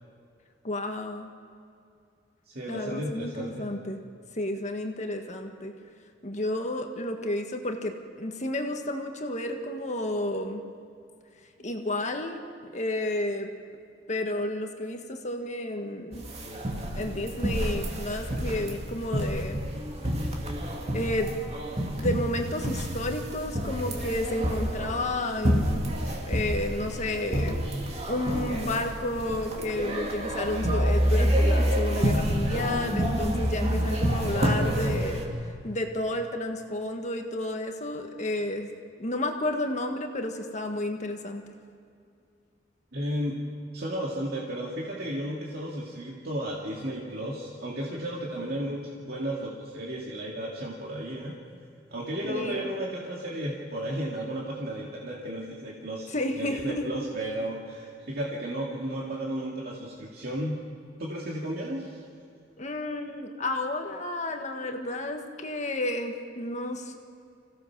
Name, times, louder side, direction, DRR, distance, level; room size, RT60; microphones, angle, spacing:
voice 1, 0.6-1.3 2.7-4.0 4.4-5.7 6.2-10.6 11.6-13.5 14.1-16.2 16.9-19.6 20.9-21.3 21.9-25.8 26.3-27.6 28.1-35.2 35.6-38.7 39.0-41.4 52.2-52.7 56.1-56.9 62.6-67.0, left 1 dB, 40° left, 4 dB, 1.5 m, -31 dB
voice 2, 2.5-3.7 42.9-43.4 43.7-51.3 51.9-60.7 61.0-62.0, right 1 dB, 60° right, -3 dB, 2.3 m, -34 dB
sound 1, 16.1-35.2, equal, 35° right, 2.6 m, -28 dB
26.0 x 16.5 x 6.1 m, 2.4 s
head